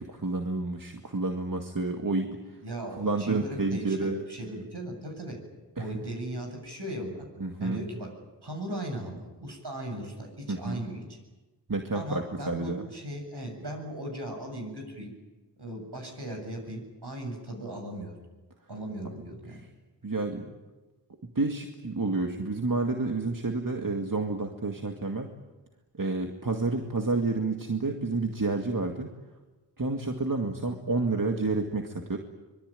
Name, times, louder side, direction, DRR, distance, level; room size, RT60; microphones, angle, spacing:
voice 1, 0.0-2.6 3.0-4.2 5.8-5.9 7.4-7.8 10.5-10.8 11.7-12.8 19.5-19.7 20.0-20.6 21.2-25.3 25.9-29.1 29.8-32.2, right 3 dB, 50° right, 3 dB, 2.2 m, -30 dB
voice 2, 2.6-5.4 5.8-7.3 7.6-8.1 8.4-11.2 11.9-15.1 15.6-18.2 18.7-19.6, right 1 dB, 70° right, 3 dB, 7.9 m, -37 dB
25.0 x 23.0 x 9.2 m, 1.2 s
wide cardioid pair, 60°, 42 cm